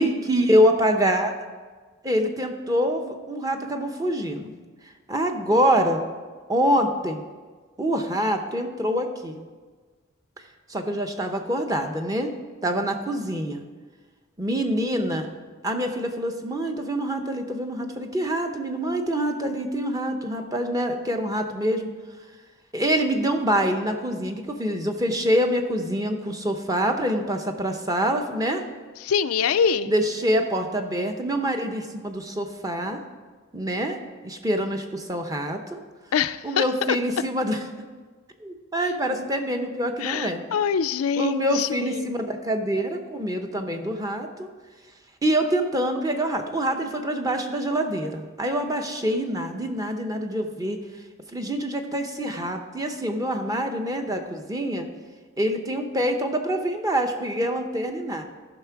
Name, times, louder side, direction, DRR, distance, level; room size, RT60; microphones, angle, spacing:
voice 1, 0.0-1.5 2.0-4.5 5.1-6.0 6.5-7.3 7.8-9.4 10.7-12.4 12.6-13.6 14.4-15.3 15.6-21.9 22.7-28.6 29.9-33.0 33.5-34.0 34.2-35.8 36.4-37.7 38.4-40.5 41.2-44.5 45.2-50.8 51.3-54.9 55.4-58.2, equal, 15° right, 5 dB, 0.7 m, -25 dB
voice 2, 29.0-29.9 36.1-36.6 40.0-42.1, left 7 dB, 90° left, 12 dB, 0.4 m, -24 dB
14.0 x 5.8 x 4.7 m, 1.4 s
head